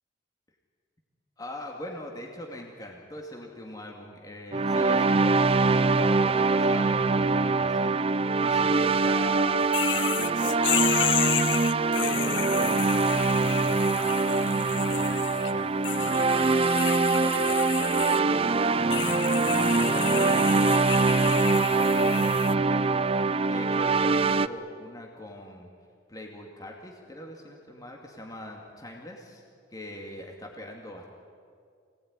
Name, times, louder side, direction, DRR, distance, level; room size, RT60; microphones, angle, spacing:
voice 1, 1.4-8.0 8.4-11.3 11.9-16.8 17.2-18.6 19.0-23.1 23.5-25.7 26.1-29.4 29.7-31.2, left 1 dB, 20° left, 0 dB, 2.6 m, -42 dB
sound 1, 4.5-24.5, right 3 dB, 30° right, 0.5 m, -23 dB
sound 2, 9.7-15.5 15.8-18.2 18.9-22.5, left 12 dB, 70° left, 0.6 m, -32 dB
26.0 x 19.0 x 9.8 m, 2.3 s
head